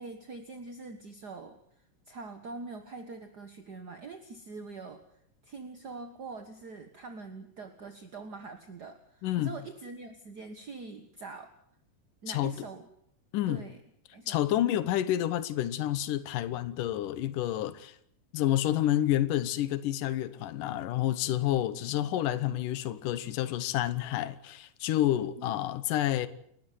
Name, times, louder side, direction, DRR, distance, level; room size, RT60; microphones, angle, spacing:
voice 1, 0.0-1.6 2.0-5.0 5.4-11.5 12.2-12.9 13.5-13.8 14.1-14.8 21.8-21.9 25.4-25.6, right 3 dB, 45° right, 1.3 m, -44 dB
voice 2, 9.2-9.6 12.3-12.5 13.3-13.6 14.3-18.0 18.3-26.3, left 13 dB, 80° left, 2.7 m, -29 dB
30.0 x 12.5 x 9.4 m
omnidirectional pair, 3.8 m